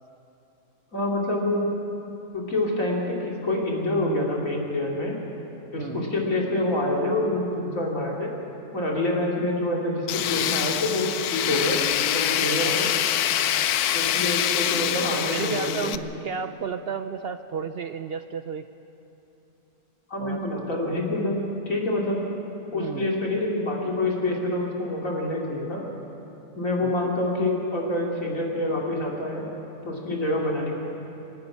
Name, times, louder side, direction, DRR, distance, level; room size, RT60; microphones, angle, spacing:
voice 1, 0.9-1.7 2.3-5.2 5.7-8.3 8.7-11.8 12.1-12.9 13.9-15.9 20.1-21.3 21.7-22.2 22.7-25.9 26.5-29.5 29.8-30.8, left 1 dB, 60° left, -2 dB, 3.1 m, -26 dB
voice 2, 5.8-6.1 12.6-12.8 15.3-18.7 20.2-20.8 22.7-23.1 26.8-27.1, right 6 dB, 65° right, 9 dB, 0.6 m, -33 dB
Tools, 10.1-16.0, left 11 dB, 80° left, 1.1 m, -25 dB
25.5 x 10.5 x 9.6 m, 2.9 s
omnidirectional pair, 1.6 m